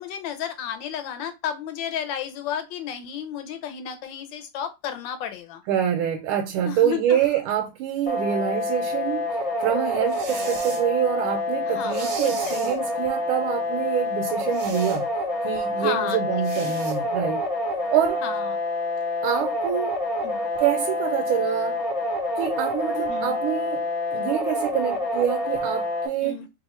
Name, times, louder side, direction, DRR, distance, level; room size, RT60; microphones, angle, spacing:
voice 1, 0.0-5.6 6.6-7.2 11.7-12.6 15.8-16.2 16.6-16.7 18.2-18.5 20.2-20.5 23.1-23.4 26.2-26.5, left 9 dB, 70° left, 1.3 m, -32 dB
voice 2, 5.7-9.3 9.6-15.1 15.4-17.5 17.9-18.2 19.2-20.0 20.6-21.8 22.4-26.4, right 10 dB, 85° right, 1.4 m, -26 dB
sound 1, 8.1-26.1, left 1 dB, 50° left, 0.4 m, -27 dB
sound 2, 10.1-10.9 11.9-12.8 14.5-15.0 16.4-17.0, right 4 dB, 60° right, 0.7 m, -37 dB
3.4 x 2.4 x 4.1 m
omnidirectional pair, 2.3 m